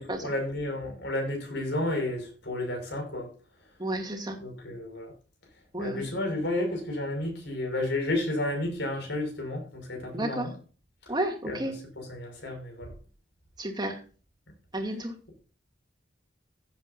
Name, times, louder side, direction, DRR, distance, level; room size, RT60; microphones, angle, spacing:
voice 1, 0.0-3.3 4.4-5.1 5.8-10.5 11.4-11.6 12.0-12.9, left 1 dB, 65° left, 6.4 m, -31 dB
voice 2, 3.8-4.4 5.7-6.1 10.1-10.5 11.1-11.7 13.6-14.0 14.7-15.1, right 1 dB, 25° right, 2.6 m, -31 dB
16.0 x 8.6 x 2.7 m
head